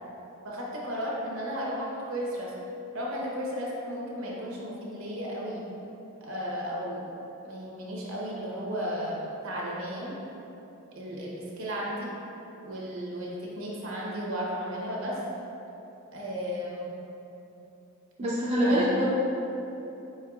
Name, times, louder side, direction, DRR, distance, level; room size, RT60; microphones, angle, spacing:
voice 1, 0.4-2.5 2.9-5.6 6.2-7.0 7.4-10.1 10.9-12.1 12.6-15.2 16.1-16.9 18.6-18.9, equal, 65° right, -4 dB, 0.8 m, -34 dB
voice 2, 18.2-19.1, equal, 30° right, -7 dB, 0.5 m, -24 dB
4.5 x 4.4 x 2.4 m, 3.0 s
head